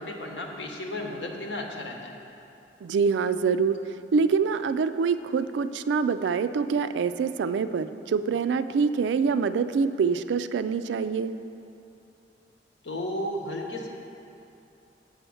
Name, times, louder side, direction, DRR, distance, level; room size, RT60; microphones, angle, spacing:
voice 1, 0.0-2.1 12.8-13.9, left 1 dB, 85° left, 1 dB, 1.1 m, -33 dB
voice 2, 2.8-11.3, right 5 dB, 80° right, 12 dB, 0.3 m, -25 dB
7.6 x 5.7 x 7.0 m, 2.8 s
head